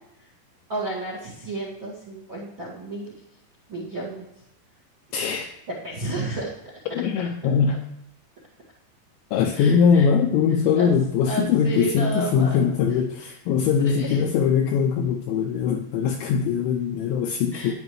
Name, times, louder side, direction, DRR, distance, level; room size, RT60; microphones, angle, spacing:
voice 1, 0.7-3.1 3.7-4.2 5.8-6.5 9.5-10.0 10.8-10.9 11.3-12.7 13.8-14.2 17.5-17.7, right 2 dB, 55° right, -5 dB, 1.3 m, -31 dB
voice 2, 5.1-5.5 6.9-7.8 9.3-17.7, left 6 dB, 85° left, 4 dB, 2.6 m, -21 dB
13.0 x 9.7 x 3.2 m, 0.85 s
omnidirectional pair, 5.9 m